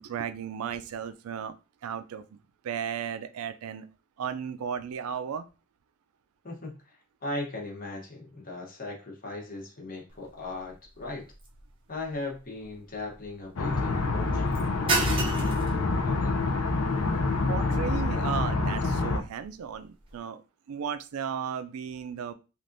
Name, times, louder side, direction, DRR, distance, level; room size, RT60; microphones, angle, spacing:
voice 1, 0.0-1.5 1.8-2.4 2.6-3.9 4.2-5.5 17.5-20.4 20.7-22.3, right 7 dB, 80° right, 11 dB, 0.3 m, -35 dB
voice 2, 6.4-11.3 11.9-14.6 14.9-15.6 16.0-16.4, left 2 dB, 40° left, -1 dB, 0.9 m, -38 dB
sound 1, 10.1-20.2, right 3 dB, 25° right, 0.6 m, -37 dB
sound 2, 13.6-19.2, left 3 dB, 80° left, 0.5 m, -27 dB
3.3 x 2.5 x 2.5 m, 0.31 s
head